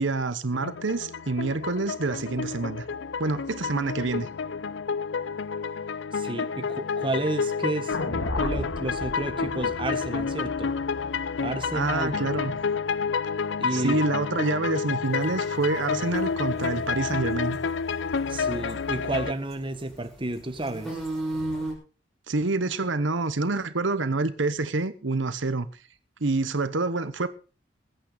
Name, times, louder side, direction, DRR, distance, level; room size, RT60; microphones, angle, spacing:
voice 1, 0.0-2.9 3.2-4.3 11.7-12.5 13.7-17.6 22.3-25.7 26.2-27.3, right 3 dB, 85° right, 1.0 m, -27 dB
sound 1, 0.5-19.3, left 5 dB, 70° left, 0.5 m, -30 dB
voice 2, 6.1-8.0 8.4-10.7 11.4-12.1 13.6-14.0 18.3-21.0, right 2 dB, 25° right, 1.4 m, -31 dB
sound 2, 7.9-12.2, left 2 dB, 85° left, 1.9 m, -34 dB
sound 3, 15.0-21.7, right 1 dB, ahead, 5.6 m, -37 dB
21.0 x 8.9 x 4.0 m
head